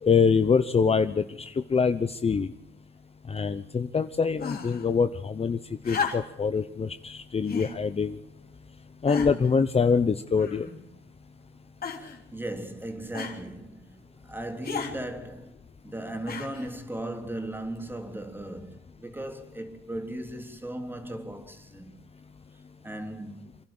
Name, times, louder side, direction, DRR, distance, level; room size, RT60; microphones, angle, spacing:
voice 1, 0.0-2.5 3.3-5.6 5.8-8.2 9.0-10.7, left 5 dB, 30° left, 0.9 m, -24 dB
sound 1, 4.4-4.9 5.8-6.5 7.5-7.8 8.5-8.6 9.1-9.5 10.4-10.9 11.8-12.2 13.1-13.4 14.6-15.0 16.3-16.7 17.8-17.9, left 6 dB, 50° left, 3.5 m, -34 dB
voice 2, 12.0-13.9 14.3-15.6 15.8-22.0 22.8-23.4, right 1 dB, 10° right, 3.2 m, -37 dB
26.5 x 12.0 x 8.8 m
cardioid pair, 90°, 20 cm